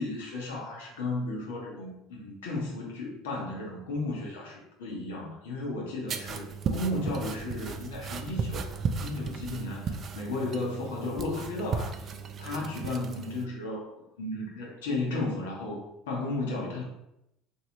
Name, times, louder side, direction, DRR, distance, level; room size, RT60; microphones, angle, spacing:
voice 1, 0.0-8.7 9.0-12.1 12.4-16.8, left 2 dB, 80° left, -2 dB, 0.9 m, -34 dB
sound 1, 6.1-13.5, right 5 dB, 45° right, 0.3 m, -35 dB
3.1 x 2.7 x 2.9 m, 0.82 s
hypercardioid pair, 75°, 0 cm